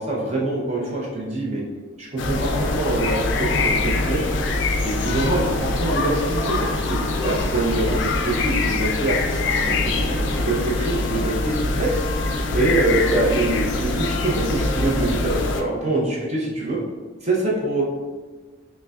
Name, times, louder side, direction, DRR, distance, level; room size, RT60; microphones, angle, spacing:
voice 1, 0.0-1.6 2.0-4.2 4.8-12.0 12.5-16.8 17.2-17.8, right 2 dB, 35° right, -4 dB, 0.6 m, -24 dB
sound 1, 2.2-15.6, left 3 dB, 70° left, 0.4 m, -24 dB
5.2 x 2.1 x 2.3 m, 1.3 s
head